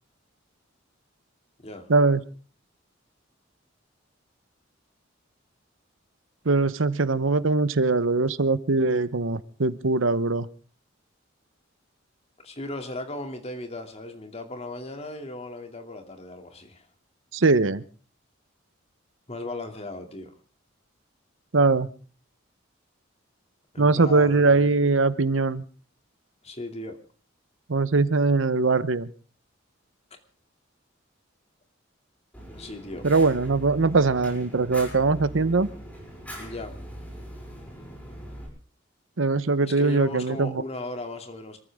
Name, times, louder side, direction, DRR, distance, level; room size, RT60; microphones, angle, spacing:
voice 1, 1.9-2.2 6.5-10.5 17.3-17.8 21.5-21.9 23.8-25.6 27.7-29.1 33.0-35.7 39.2-40.5, right 3 dB, 75° right, 15 dB, 0.9 m, -21 dB
voice 2, 12.4-16.9 19.3-20.3 23.7-24.7 26.4-27.0 32.5-33.1 36.3-36.7 39.8-41.6, left 2 dB, 30° left, 5 dB, 2.7 m, -36 dB
Fire, 32.3-38.5, equal, 10° left, 6.5 m, -41 dB
26.5 x 14.5 x 3.6 m, 0.40 s
head